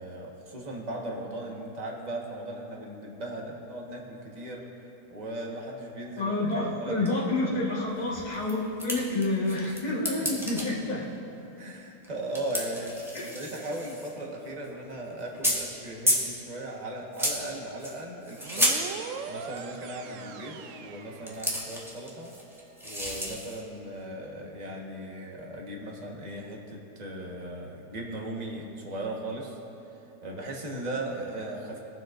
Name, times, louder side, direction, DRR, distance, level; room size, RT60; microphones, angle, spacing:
voice 1, 0.0-4.6 5.1-7.4 10.2-10.3 11.6-18.8 19.3-22.3 22.8-29.6 30.2-31.8, right 1 dB, 25° right, -1 dB, 1.3 m, -37 dB
voice 2, 6.2-11.0 13.1-13.3, left 2 dB, 25° left, -4 dB, 1.5 m, -29 dB
sound 1, 6.5-6.6 7.0-7.1 7.4-7.5 7.8-9.8 10.0-10.7 12.0-12.1 12.3-14.2 14.5-14.8 15.2-15.7 16.1-16.3 17.1-17.5 17.8-18.8 19.6-19.7 21.3-23.6, equal, ahead, 1.2 m, -31 dB
sound 2, 18.4-21.9, right 6 dB, 70° right, 0.7 m, -41 dB
22.5 x 7.6 x 2.5 m, 2.9 s
omnidirectional pair, 1.8 m